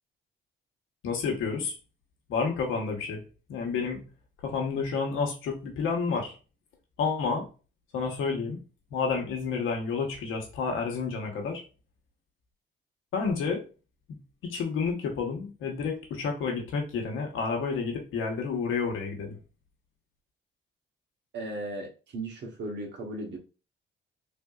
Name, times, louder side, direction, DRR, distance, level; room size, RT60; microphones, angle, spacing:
voice 1, 1.0-1.8 2.3-3.2 3.5-4.0 4.4-6.3 7.0-7.5 7.9-8.6 8.9-11.6 13.1-13.6 14.4-19.4, left 5 dB, 85° left, 1 dB, 1.1 m, -30 dB
voice 2, 21.3-23.4, right 2 dB, 65° right, 1 dB, 1.1 m, -36 dB
3.6 x 2.6 x 2.4 m, 0.32 s
cardioid pair, 90°, 20 cm